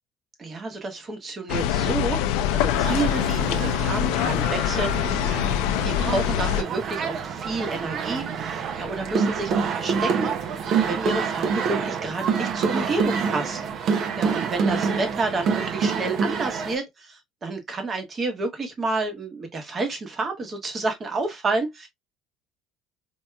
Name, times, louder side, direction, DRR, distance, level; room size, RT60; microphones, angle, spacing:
voice 1, 0.4-5.0 5.8-21.9, right 3 dB, 25° right, 1.0 m, -30 dB
sound 1, 1.5-6.6, left 10 dB, 85° left, 0.5 m, -24 dB
sound 2, 2.7-16.8, right 6 dB, 45° right, 0.6 m, -27 dB
4.5 x 2.7 x 2.2 m
cardioid pair, 145°, 0 cm